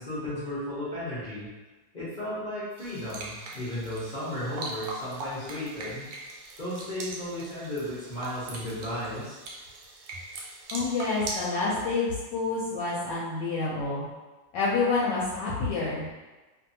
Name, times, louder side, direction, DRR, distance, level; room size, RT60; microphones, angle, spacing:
voice 1, 0.0-1.5 1.9-6.0 6.6-9.4, left 1 dB, 50° left, -12 dB, 0.5 m, -34 dB
sound 1, 2.8-11.5, right 2 dB, 85° right, 1.3 m, -40 dB
voice 2, 10.7-14.1 14.5-16.1, left 3 dB, 75° left, -6 dB, 1.2 m, -28 dB
2.7 x 2.6 x 2.6 m, 1.2 s
omnidirectional pair, 2.0 m